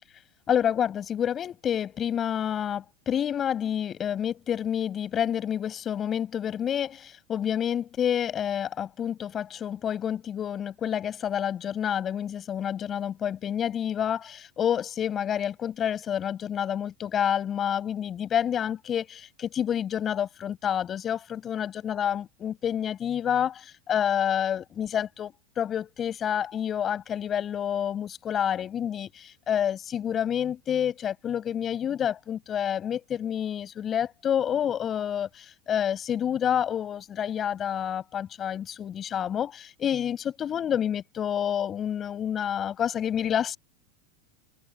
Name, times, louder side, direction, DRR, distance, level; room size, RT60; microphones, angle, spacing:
voice 1, 0.5-43.6, left 9 dB, 25° left, 7.1 m, -28 dB
supercardioid pair, 155°, 0 cm